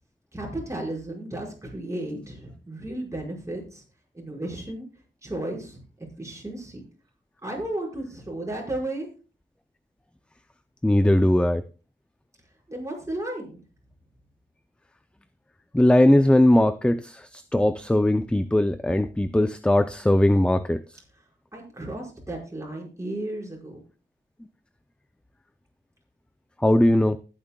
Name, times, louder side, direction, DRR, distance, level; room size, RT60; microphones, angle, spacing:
voice 1, 0.3-3.8 4.1-4.9 5.2-5.8 6.2-6.8 7.4-9.1 12.7-13.6 21.5-23.8, right 1 dB, 15° right, -1 dB, 5.6 m, -34 dB
voice 2, 10.8-11.6 15.7-20.8 26.6-27.2, left 1 dB, 5° left, 11 dB, 0.5 m, -19 dB
20.0 x 8.9 x 2.3 m, 0.34 s
wide cardioid pair, 110°, 20 cm